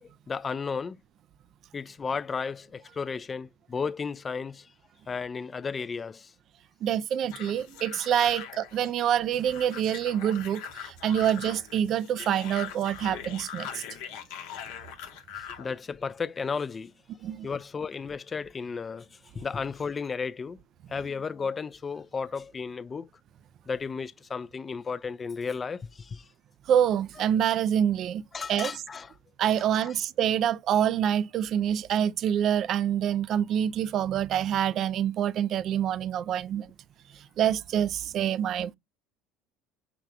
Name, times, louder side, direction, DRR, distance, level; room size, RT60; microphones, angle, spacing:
voice 1, 0.0-1.0 1.7-4.7 5.1-6.3 8.3-8.4 15.6-16.9 17.4-20.6 20.9-23.1 23.7-26.2 28.3-29.1 29.8-29.9, left 5 dB, 30° left, 0.3 m, -34 dB
voice 2, 6.8-13.8 17.2-17.5 26.7-28.8 29.4-36.7 37.1-38.8, right 9 dB, 50° right, 0.3 m, -26 dB
sound 1, 7.3-15.7, left 9 dB, 70° left, 0.8 m, -42 dB
5.9 x 3.1 x 2.4 m
hypercardioid pair, 70°, 0 cm